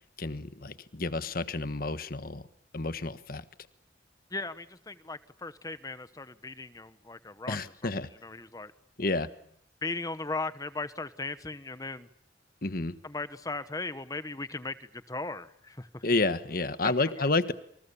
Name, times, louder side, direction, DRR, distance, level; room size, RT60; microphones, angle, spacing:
voice 1, 0.2-2.5 2.7-3.4 7.5-8.1 9.0-9.3 12.6-13.0 16.0-17.5, left 3 dB, 50° left, 12 dB, 1.4 m, -30 dB
voice 2, 4.3-7.6 8.2-8.7 9.8-12.1 13.0-16.0 16.8-17.1, left 3 dB, 20° left, 13 dB, 1.0 m, -37 dB
29.0 x 27.0 x 7.0 m, 0.69 s
head